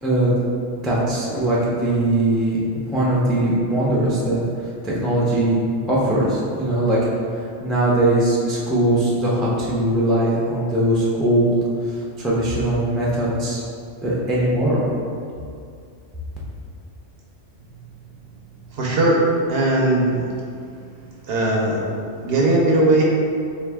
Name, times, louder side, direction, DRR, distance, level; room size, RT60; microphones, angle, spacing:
voice 1, 0.0-0.4 0.8-2.6 2.9-4.4 4.8-7.0 7.4-11.5 11.8-13.6 14.0-14.9, right 1 dB, ahead, -6 dB, 0.3 m, -20 dB
voice 2, 18.7-19.2 19.5-20.3 21.3-21.8 22.2-23.0, right 2 dB, 60° right, -3 dB, 0.8 m, -18 dB
4.6 x 2.5 x 3.4 m, 2.4 s
omnidirectional pair, 1.3 m